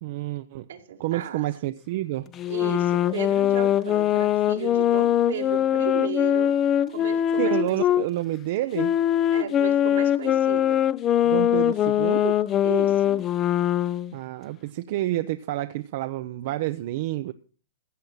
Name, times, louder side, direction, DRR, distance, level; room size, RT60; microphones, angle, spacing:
voice 1, 0.0-0.7 1.0-2.3 7.4-8.9 11.2-12.4 14.1-17.3, right 15 dB, 55° right, 0.6 m, -29 dB
voice 2, 0.7-1.4 2.5-6.5 6.9-8.1 9.3-10.8 12.6-13.2, right 8 dB, 80° right, 2.2 m, -35 dB
sound 1, 2.4-8.1 8.7-14.1, left 11 dB, 30° left, 0.5 m, -22 dB
15.5 x 7.7 x 5.7 m
hypercardioid pair, 135°, 0 cm